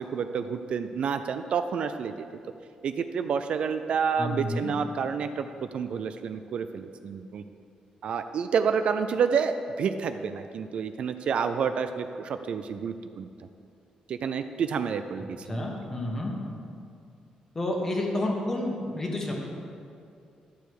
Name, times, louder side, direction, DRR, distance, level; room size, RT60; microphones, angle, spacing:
voice 1, 0.0-2.1 2.8-5.5 5.7-7.4 8.0-13.3 14.1-15.7, right 6 dB, 50° right, 9 dB, 0.3 m, -29 dB
voice 2, 4.2-4.7 15.5-16.4 17.5-19.3, left 1 dB, 20° left, 0 dB, 1.3 m, -30 dB
12.0 x 6.9 x 4.7 m, 2.5 s
wide cardioid pair, 175°, 2 cm